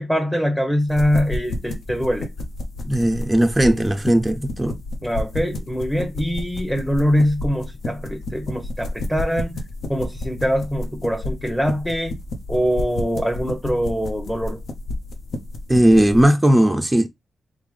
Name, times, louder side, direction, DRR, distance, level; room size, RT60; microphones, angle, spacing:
voice 1, 0.0-2.3 5.0-9.6 9.9-12.2 12.5-14.6, equal, 5° left, 0.9 m, -23 dB
sound 1, 0.9-16.2, left 2 dB, 75° left, 0.7 m, -31 dB
voice 2, 2.8-4.8 15.7-17.1, right 1 dB, 15° right, 0.4 m, -17 dB
3.7 x 3.5 x 3.2 m
cardioid pair, 65°, 0 cm